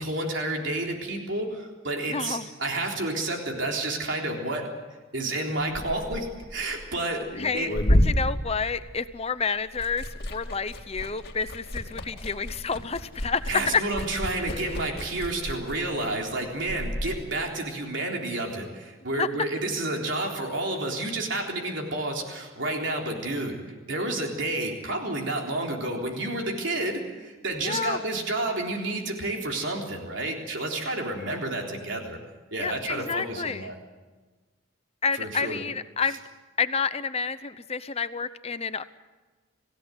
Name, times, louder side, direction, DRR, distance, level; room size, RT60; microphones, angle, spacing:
voice 1, 0.0-4.7 5.1-7.3 7.5-7.7 13.5-23.6 23.9-32.2 32.5-33.7 35.2-35.6, right 2 dB, 60° right, 1 dB, 3.8 m, -30 dB
voice 2, 2.1-2.5 7.4-7.7 8.0-13.8 14.5-14.6 19.2-19.3 27.6-28.0 32.6-33.7 35.0-36.2 36.6-38.8, left 5 dB, 30° left, 13 dB, 0.7 m, -29 dB
Liquid, 5.6-9.3 9.6-17.2, equal, 50° left, 2.5 m, -30 dB
27.0 x 16.0 x 7.8 m, 1.3 s
head